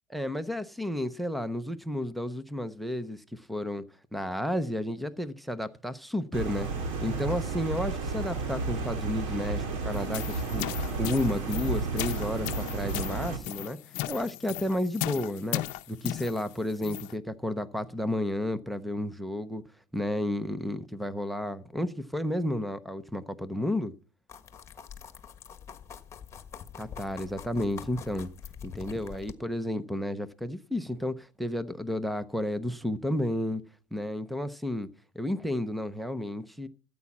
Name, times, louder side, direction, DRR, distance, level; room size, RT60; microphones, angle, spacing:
voice 1, 0.1-3.8 4.1-6.7 7.0-13.8 14.1-19.6 19.9-23.9 26.8-28.3 28.6-33.6 33.9-34.9 35.1-36.7, left 1 dB, ahead, 0.6 m, -32 dB
sound 1, 6.3-13.4, right 4 dB, 85° right, 2.8 m, -32 dB
sound 2, 9.9-17.1, left 17 dB, 50° left, 0.7 m, -37 dB
sound 3, 24.3-29.3, left 7 dB, 15° left, 1.4 m, -45 dB
14.0 x 8.4 x 5.9 m
cardioid pair, 160°, 16 cm